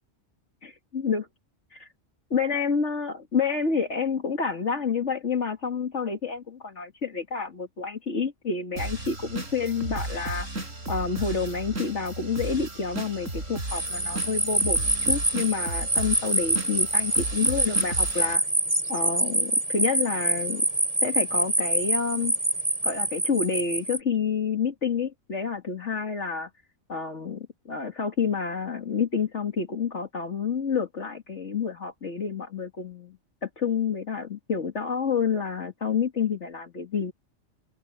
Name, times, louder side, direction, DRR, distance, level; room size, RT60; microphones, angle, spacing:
voice 1, 2.3-10.5 10.9-18.5 18.9-20.6 21.0-22.4 22.8-26.5 26.9-37.1, left 5 dB, 65° left, 2.4 m, -29 dB
sound 1, 8.8-18.4, right 2 dB, 80° right, 5.7 m, -35 dB
sound 2, 13.7-24.0, right 1 dB, 25° right, 2.7 m, -26 dB
omnidirectional pair, 1.3 m